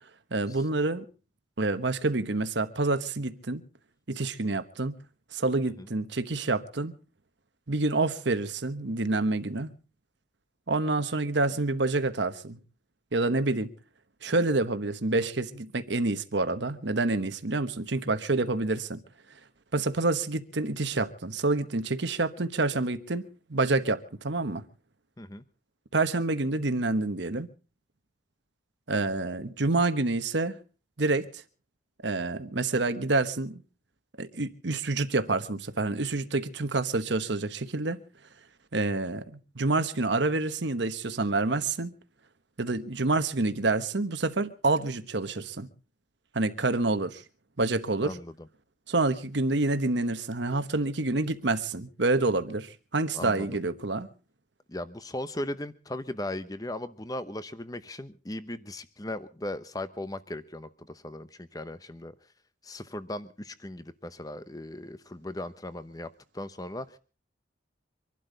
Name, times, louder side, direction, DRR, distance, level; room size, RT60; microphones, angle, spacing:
voice 1, 0.3-1.0 1.6-3.6 4.1-4.9 5.3-6.9 7.7-9.7 10.7-12.6 13.1-13.7 14.2-19.0 19.7-24.6 25.9-27.5 28.9-30.6 31.0-31.4 32.0-33.6 34.2-38.0 38.7-41.9 42.6-45.7 46.3-47.2 47.6-48.2 48.9-54.1, right 2 dB, 65° right, 1.1 m, -28 dB
voice 2, 48.0-48.5 53.1-53.6 54.7-62.1 62.6-67.0, left 1 dB, 20° left, 0.9 m, -38 dB
25.5 x 12.0 x 3.9 m
head